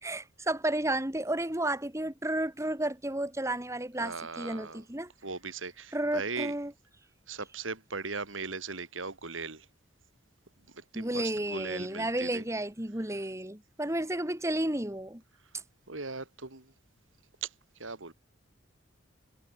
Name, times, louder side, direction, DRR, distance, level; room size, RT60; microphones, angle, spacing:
voice 1, 0.0-5.1 5.9-6.7 10.9-15.2 15.5-15.6, right 1 dB, 15° right, 2.1 m, -32 dB
voice 2, 4.0-4.8 5.2-6.5 7.3-9.7 10.7-12.4 15.9-16.7 17.4-17.5 17.8-18.1, right 4 dB, 90° right, 3.1 m, -38 dB
head